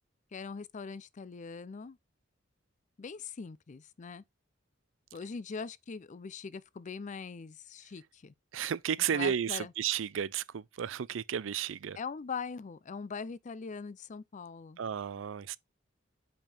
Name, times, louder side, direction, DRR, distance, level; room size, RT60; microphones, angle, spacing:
voice 1, 0.3-2.0 3.0-4.2 5.1-8.3 9.1-9.7 12.0-14.8, left 5 dB, 40° left, 0.4 m, -41 dB
voice 2, 8.5-12.0 14.8-15.6, right 8 dB, 80° right, 0.4 m, -33 dB
5.3 x 5.2 x 4.4 m
head